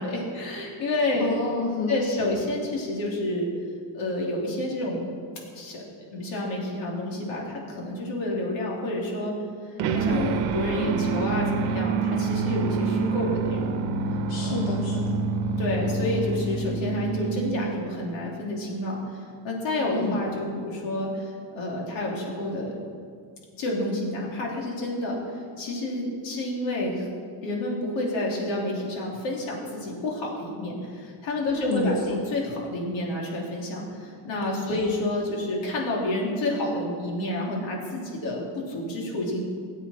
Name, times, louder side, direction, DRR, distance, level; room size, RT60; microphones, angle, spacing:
voice 1, 0.0-1.3 1.9-3.5 3.9-5.0 5.5-5.8 6.1-9.3 9.7-13.8 14.4-14.6 15.6-22.7 23.6-27.1 27.4-39.4, left 1 dB, 70° left, -2 dB, 3.1 m, -29 dB
voice 2, 1.2-2.3 10.1-10.5 14.3-15.2 19.9-20.3 31.5-32.2 34.7-34.8, left 3 dB, 45° left, -1 dB, 1.3 m, -30 dB
sound 1, 9.8-18.0, right 4 dB, 90° right, 1.0 m, -27 dB
18.0 x 8.5 x 4.4 m, 2.1 s
cardioid pair, 180°, 48 cm